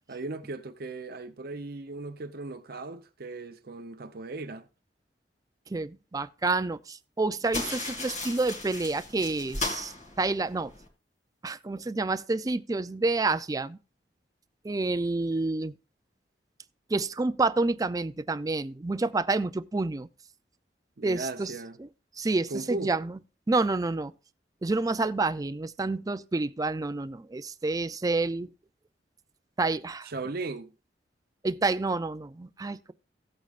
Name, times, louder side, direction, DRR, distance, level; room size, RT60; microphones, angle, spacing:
voice 1, 0.1-4.7 21.0-21.8 22.5-22.9 30.0-30.7, right 3 dB, 60° right, 0.7 m, -37 dB
voice 2, 5.7-10.7 11.4-13.8 14.6-15.7 16.9-20.1 21.0-21.5 21.8-21.9 22.2-23.2 23.5-24.1 24.6-28.5 29.6-30.1 31.4-32.9, right 3 dB, 20° right, 0.4 m, -29 dB
sound 1, 7.5-10.9, left 2 dB, 45° left, 2.4 m, -36 dB
16.5 x 8.3 x 2.5 m
head